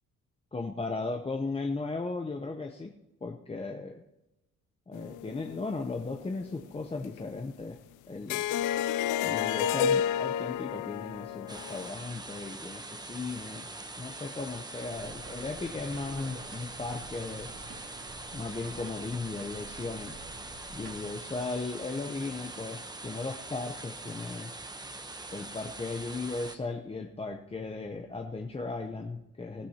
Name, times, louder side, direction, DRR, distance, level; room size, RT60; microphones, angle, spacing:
voice 1, 0.5-2.9 3.2-4.0 4.9-7.8 8.1-8.5 9.2-13.7 14.0-17.5 18.3-20.1 20.7-24.5 25.3-29.7, left 3 dB, 20° left, 4 dB, 0.8 m, -36 dB
sound 1, 4.9-6.8 7.0-7.2 8.3-11.9, left 9 dB, 85° left, 0.5 m, -31 dB
sound 2, 11.5-26.6, right 2 dB, 15° right, 0.9 m, -43 dB
sound 3, 14.9-21.0, right 2 dB, 45° right, 2.3 m, -48 dB
19.5 x 13.5 x 2.9 m, 1.0 s
cardioid pair, 90°, 30 cm